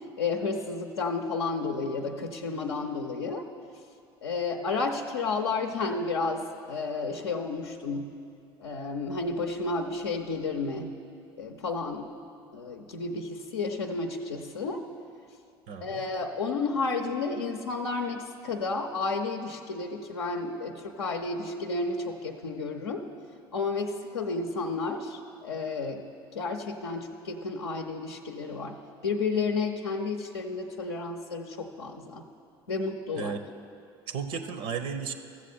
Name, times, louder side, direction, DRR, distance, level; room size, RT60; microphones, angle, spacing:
voice 1, 0.2-3.4 4.2-8.2 8.6-10.9 11.4-12.1 12.5-14.8 15.8-23.0 23.5-26.0 26.3-28.8 29.0-32.2 32.7-33.3, left 4 dB, 80° left, 2 dB, 0.6 m, -31 dB
voice 2, 15.7-16.1 33.2-33.4 34.1-35.1, right 6 dB, 65° right, 9 dB, 0.6 m, -34 dB
14.5 x 7.3 x 4.3 m, 2.5 s
hypercardioid pair, 65°, 13 cm